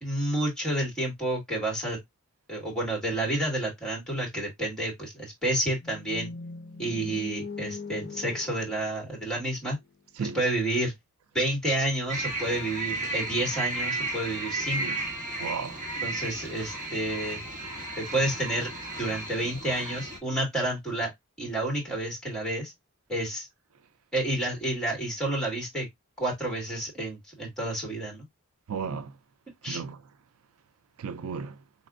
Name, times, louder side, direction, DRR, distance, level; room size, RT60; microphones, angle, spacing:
voice 1, 0.0-2.0 2.5-6.3 6.8-9.8 10.2-10.9 11.3-14.8 16.0-17.4 18.0-18.7 19.0-21.1 21.4-22.7 23.1-23.5 24.1-25.9 26.2-28.3 29.6-29.8, right 1 dB, 5° left, 2.1 m, -30 dB
sound 1, 5.8-9.9, left 4 dB, 50° left, 0.5 m, -41 dB
sound 2, 12.1-20.2, right 2 dB, 40° right, 1.4 m, -34 dB
voice 2, 15.4-15.8 28.7-29.1 29.7-30.0 31.0-31.5, right 6 dB, 75° right, 0.4 m, -34 dB
4.2 x 3.4 x 2.5 m
head